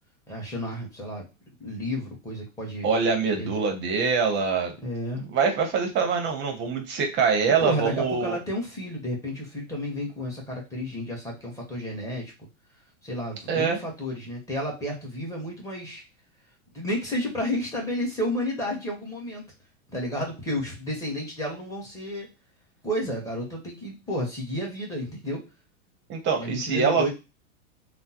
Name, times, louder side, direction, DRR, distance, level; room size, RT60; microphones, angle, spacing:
voice 1, 0.3-1.2 1.6-2.9 3.4-3.5 4.8-5.2 7.5-12.3 13.0-16.0 16.7-19.5 19.9-22.3 22.8-25.5 26.3-27.1, equal, 10° left, -3 dB, 1.1 m, -31 dB
voice 2, 2.8-4.8 5.2-8.3 13.5-13.8 26.1-27.1, right 5 dB, 25° right, 3 dB, 0.7 m, -24 dB
3.5 x 2.0 x 2.8 m, 0.27 s
hypercardioid pair, 130°, 41 cm